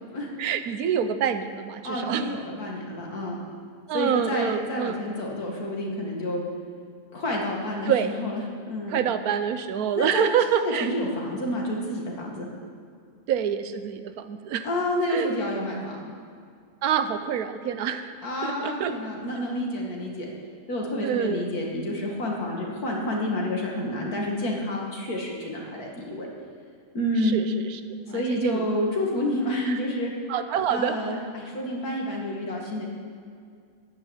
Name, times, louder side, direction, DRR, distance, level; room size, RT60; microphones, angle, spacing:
voice 1, 0.4-2.4 3.9-5.0 7.9-8.1 8.9-10.9 13.3-14.7 15.1-15.3 16.8-18.1 18.4-18.9 21.0-21.5 27.2-27.8 28.1-28.7 29.7-29.8 30.3-31.0, right 8 dB, 85° right, 10 dB, 1.2 m, -26 dB
voice 2, 1.8-3.4 3.9-6.4 7.1-9.0 10.0-12.5 14.6-16.0 18.2-20.3 20.7-26.3 26.9-27.4 28.1-30.1 30.7-32.9, left 1 dB, 80° left, -2 dB, 2.7 m, -29 dB
14.0 x 5.9 x 9.7 m, 2.2 s
omnidirectional pair, 1.6 m